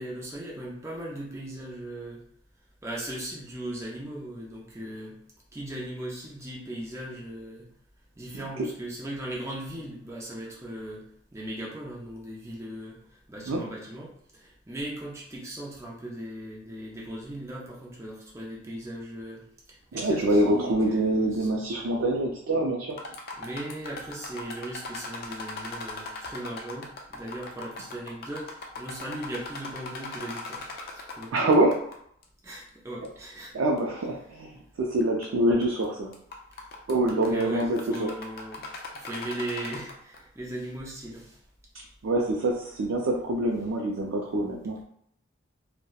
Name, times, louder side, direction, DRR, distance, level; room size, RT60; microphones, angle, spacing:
voice 1, 0.0-2.2 2.8-5.2 5.5-7.7 8.2-11.0 11.3-21.6 23.4-31.5 32.4-33.5 36.6-36.7 37.0-38.6 38.9-41.4, right 1 dB, 15° right, -4 dB, 0.4 m, -38 dB
voice 2, 19.9-23.0 31.3-31.8 33.5-36.1 36.9-38.1 42.0-44.8, right 1 dB, 85° right, -1 dB, 0.4 m, -25 dB
sound 1, 22.9-31.9 32.2-32.3 33.0-33.1 33.8-33.9 35.0-35.3 35.6-35.8 36.1-40.2, left 2 dB, 50° left, 0.4 m, -39 dB
2.7 x 2.0 x 2.2 m, 0.67 s
head